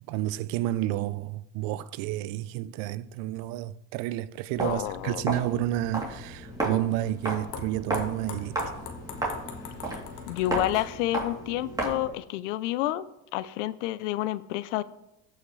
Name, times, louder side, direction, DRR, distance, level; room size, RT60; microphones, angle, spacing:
voice 1, 0.1-8.6, right 14 dB, 70° right, 0.6 m, -30 dB
Walk footsteps, 4.5-12.2, right 2 dB, 10° right, 2.9 m, -34 dB
voice 2, 4.6-5.2 10.3-13.1 13.3-14.8, left 15 dB, 90° left, 0.6 m, -29 dB
sound 1, 5.4-11.3, left 6 dB, 55° left, 1.6 m, -44 dB
15.5 x 5.7 x 3.2 m
supercardioid pair, 100°, 36 cm